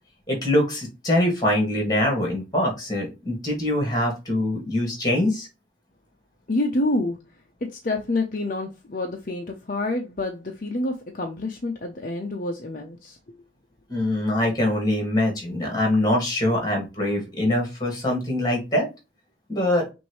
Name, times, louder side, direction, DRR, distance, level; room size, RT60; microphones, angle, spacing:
voice 1, 0.3-5.5 13.9-18.9 19.5-19.8, left 1 dB, 20° left, 2.1 m, -23 dB
voice 2, 6.5-7.2 7.6-13.2, left 2 dB, 45° left, 0.7 m, -27 dB
5.9 x 2.7 x 3.1 m
head